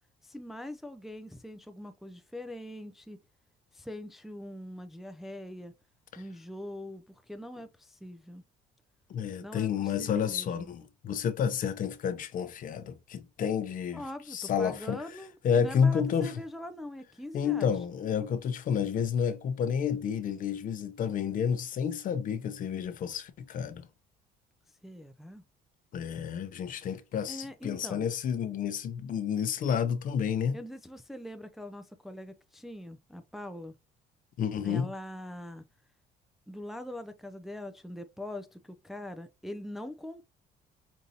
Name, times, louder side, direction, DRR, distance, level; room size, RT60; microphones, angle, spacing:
voice 1, 0.2-3.2 3.7-5.7 6.2-8.4 9.4-10.7 13.9-17.7 24.8-25.4 27.3-28.0 30.5-33.8 34.6-35.6 36.5-40.3, left 1 dB, ahead, 0.4 m, -42 dB
voice 2, 9.1-14.0 14.3-15.0 15.4-16.3 17.3-23.9 25.9-30.6 34.4-34.9, left 7 dB, 55° left, 0.7 m, -30 dB
5.3 x 2.6 x 2.8 m
cardioid pair, 110°, 17 cm